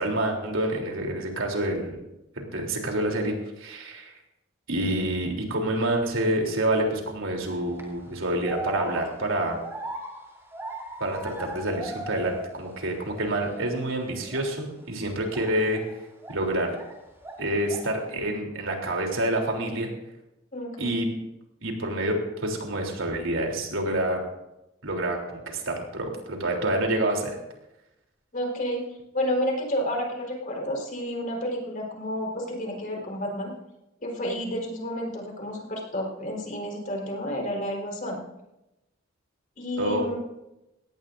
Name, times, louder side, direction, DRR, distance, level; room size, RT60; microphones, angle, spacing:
voice 1, 0.0-2.0 2.4-4.1 4.7-9.6 11.0-15.8 16.3-16.7 17.4-19.9 20.8-21.1 21.6-24.2 24.8-27.4 39.8-40.2, right 1 dB, 85° right, 1 dB, 3.4 m, -27 dB
sound 1, 7.5-7.8 8.4-12.8 13.1-13.8 14.3-14.5 15.3-16.9 17.2-18.0, right 2 dB, 15° right, 3.5 m, -39 dB
voice 2, 20.5-21.0 28.3-28.9 29.1-33.5 34.0-38.2 39.6-40.2, equal, 45° left, -1 dB, 4.3 m, -30 dB
20.0 x 17.0 x 2.6 m, 0.92 s
head